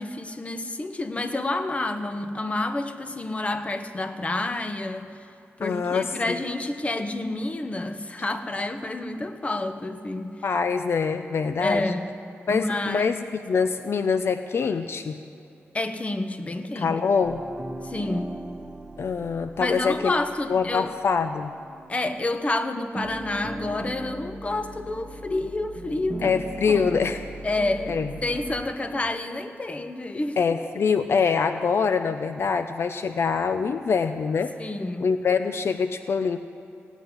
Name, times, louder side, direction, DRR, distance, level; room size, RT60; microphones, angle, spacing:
voice 1, 0.0-5.2 5.6-10.4 11.6-12.1 12.5-13.1 15.7-17.0 17.8-18.4 19.6-20.9 21.9-26.4 26.7-27.0 27.4-30.4 34.6-35.1, left 2 dB, 30° left, 8 dB, 1.0 m, -29 dB
voice 2, 5.6-6.4 10.4-11.9 12.5-15.2 16.8-17.4 19.0-20.2 20.5-21.5 26.2-27.2 27.9-28.1 30.4-34.5 35.0-36.4, left 5 dB, 60° left, 9 dB, 0.6 m, -24 dB
sound 1, 17.2-22.5 22.8-29.0, right 2 dB, 15° right, 1.0 m, -39 dB
17.0 x 8.2 x 9.6 m, 2.6 s
wide cardioid pair, 90°, 5 cm